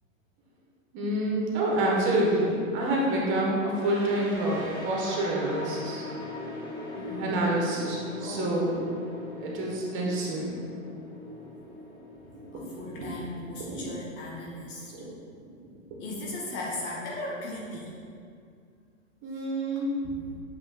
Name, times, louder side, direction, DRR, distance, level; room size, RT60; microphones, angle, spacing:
voice 1, 0.9-6.0 7.2-8.8 9.4-10.5 12.5-12.6 13.7-13.9 14.9-15.2 15.9-16.0 19.2-19.9, right 1 dB, 30° right, -3 dB, 1.3 m, -27 dB
sound 1, 3.8-14.6, left 1 dB, 10° left, 1.3 m, -41 dB
voice 2, 7.0-7.5 8.2-8.5 12.5-15.0 16.0-17.9 20.0-20.4, left 1 dB, 30° left, -2 dB, 0.7 m, -37 dB
7.5 x 5.7 x 2.3 m, 2.3 s
hypercardioid pair, 115°, 41 cm